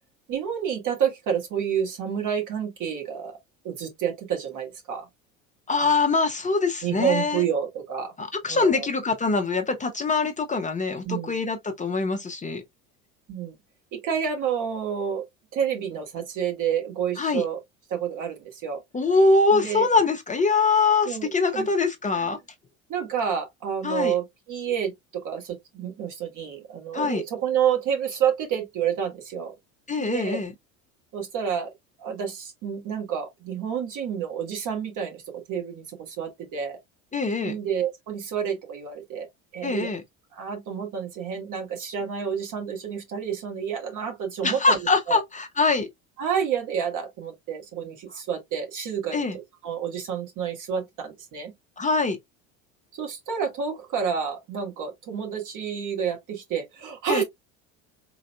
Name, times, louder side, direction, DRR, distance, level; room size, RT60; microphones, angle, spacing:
voice 1, 0.3-3.4 3.6-5.1 5.8-5.9 6.8-8.1 8.5-8.9 11.0-11.4 13.3-13.5 13.9-15.2 15.5-17.6 17.9-18.8 19.5-19.9 21.1-21.7 22.9-29.5 30.0-30.4 31.1-31.7 32.0-35.2 35.5-36.8 37.4-39.3 39.5-39.9 40.3-45.2 46.2-51.5 52.9-57.2, right 8 dB, 55° right, 2.0 m, -29 dB
voice 2, 5.7-7.4 8.2-12.6 17.2-17.4 18.9-22.4 23.8-24.1 26.9-27.2 29.9-30.5 37.1-37.6 39.6-40.0 44.4-45.9 49.1-49.4 51.8-52.2 57.1-57.2, left 3 dB, 20° left, 0.8 m, -23 dB
4.0 x 3.9 x 2.3 m
hypercardioid pair, 75°, 38 cm